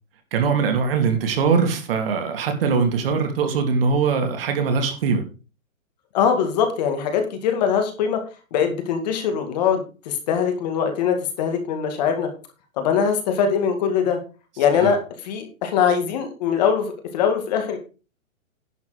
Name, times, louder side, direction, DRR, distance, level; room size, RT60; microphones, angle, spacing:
voice 1, 0.3-5.2 14.7-14.9, right 5 dB, 45° right, 5 dB, 2.8 m, -21 dB
voice 2, 6.1-8.2 8.5-12.3 12.8-14.2 14.6-15.0 15.2-16.9 17.1-17.8, left 7 dB, 30° left, 6 dB, 2.1 m, -22 dB
11.0 x 7.0 x 5.0 m, 0.33 s
hypercardioid pair, 170°, 41 cm